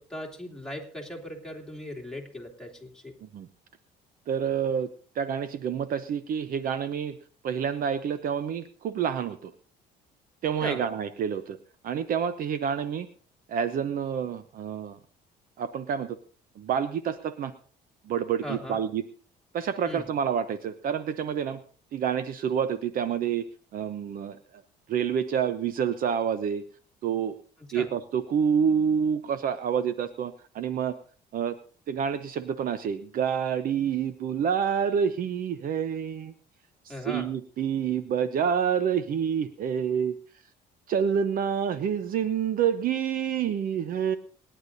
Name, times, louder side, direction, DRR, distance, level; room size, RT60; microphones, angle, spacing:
voice 1, 0.0-3.1 10.6-10.8 18.4-18.8 19.8-20.0 27.7-27.9 36.9-37.3, equal, 5° left, 0 dB, 2.8 m, -38 dB
voice 2, 4.3-4.9 5.2-7.2 7.4-9.5 10.4-11.6 11.8-13.1 13.5-15.0 15.6-16.2 16.6-17.5 18.1-19.0 19.5-21.6 21.9-23.4 23.7-24.4 24.9-26.6 27.0-27.4 27.7-30.9 31.3-31.6 31.9-36.3 36.9-40.1 40.9-44.2, right 7 dB, 60° right, 12 dB, 0.8 m, -28 dB
26.0 x 10.0 x 2.7 m, 0.41 s
cardioid pair, 110°, 17 cm